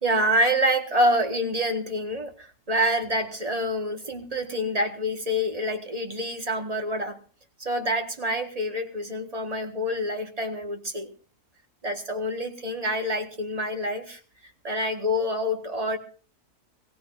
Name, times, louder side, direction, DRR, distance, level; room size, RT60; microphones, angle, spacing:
voice 1, 0.0-7.2 7.6-11.1 11.8-14.2 14.6-16.0, equal, 25° right, 5 dB, 1.5 m, -27 dB
20.0 x 16.0 x 2.6 m, 0.38 s
omnidirectional pair, 1.7 m